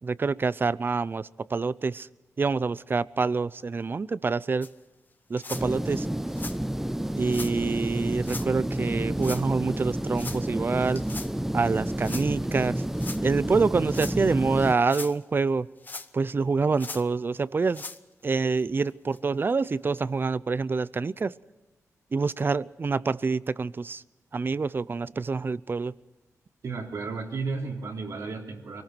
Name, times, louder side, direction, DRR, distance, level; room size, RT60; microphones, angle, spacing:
voice 1, 0.0-2.1 2.4-4.7 5.3-6.1 7.1-11.0 11.5-12.8 13.2-15.7 16.1-17.8 18.2-21.3 22.1-24.0 24.3-25.9, right 4 dB, 40° right, 0.6 m, -26 dB
sound 1, 4.6-4.7 5.4-5.6 6.3-6.6 7.3-7.5 8.2-8.5 9.2-9.4 10.1-10.4 11.0-11.3 12.0-12.3 13.0-13.2 13.8-14.2 14.7-15.2 15.8-16.3 16.8-17.0 17.6-18.0 18.6-18.7 19.1-19.2 20.0-20.1, left 3 dB, 30° left, 0.9 m, -39 dB
sound 2, 5.5-14.7, right 1 dB, 5° right, 0.7 m, -30 dB
voice 2, 26.6-28.8, right 4 dB, 75° right, 3.2 m, -33 dB
24.0 x 18.5 x 6.1 m
cardioid pair, 85°, 6 cm